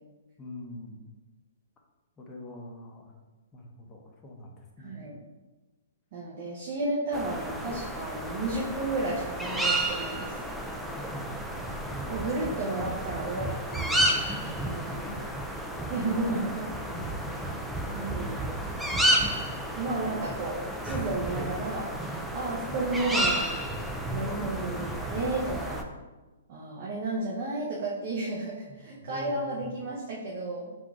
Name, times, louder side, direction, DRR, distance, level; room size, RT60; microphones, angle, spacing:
voice 1, 0.4-1.1 2.2-3.1 3.5-5.0 11.0-11.5 14.6-15.2 15.8-16.1 18.0-18.8 24.4-24.6 28.7-29.6, left 1 dB, 15° left, -1 dB, 0.7 m, -44 dB
voice 2, 4.8-5.2 6.1-10.5 12.1-14.0 14.7-15.1 15.9-16.7 17.9-18.5 19.8-23.5 24.1-25.8 26.5-30.8, right 2 dB, 40° right, -5 dB, 0.8 m, -32 dB
sound 1, 7.1-25.8, right 1 dB, ahead, 0.3 m, -31 dB
3.7 x 2.5 x 4.6 m, 1.2 s
hypercardioid pair, 155°, 0 cm